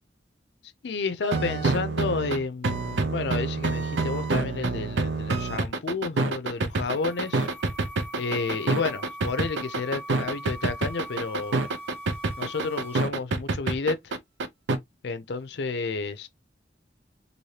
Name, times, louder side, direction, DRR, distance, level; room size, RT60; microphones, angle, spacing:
voice 1, 0.8-7.5 8.2-11.6 12.4-14.1 15.0-16.3, left 4 dB, 65° left, 0.5 m, -31 dB
sound 1, 1.2-14.8, right 3 dB, 90° right, 0.6 m, -27 dB
sound 2, 6.6-13.1, right 1 dB, 60° right, 1.5 m, -41 dB
3.2 x 2.6 x 2.7 m
head